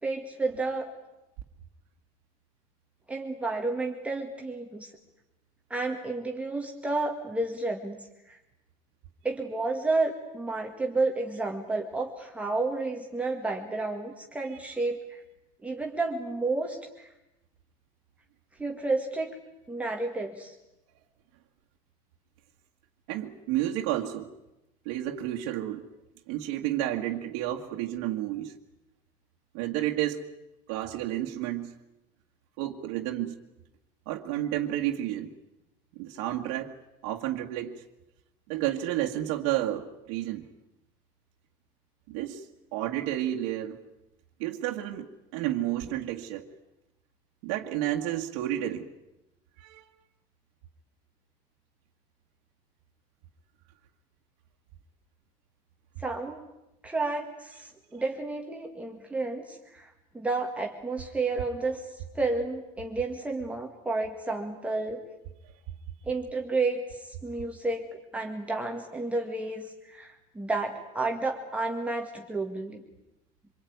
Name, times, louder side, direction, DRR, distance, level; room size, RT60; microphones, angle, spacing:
voice 1, 0.0-0.9 3.1-4.9 5.7-8.0 8.3-8.4 9.2-15.2 15.6-17.1 18.6-19.3 19.7-20.6 56.0-56.4 56.8-65.0 66.1-67.9 68.1-72.8, right 3 dB, 10° right, 1 dB, 1.9 m, -31 dB
voice 2, 23.1-24.3 24.9-25.9 26.3-28.5 29.5-30.2 30.7-31.7 32.6-33.4 34.1-35.3 36.0-36.7 37.0-37.8 38.5-40.5 42.1-43.8 44.4-45.1 45.3-46.4 47.4-48.9 49.6-49.9, right 13 dB, 90° right, 0 dB, 2.0 m, -31 dB
26.0 x 23.0 x 9.5 m, 0.92 s
cardioid pair, 160°, 16 cm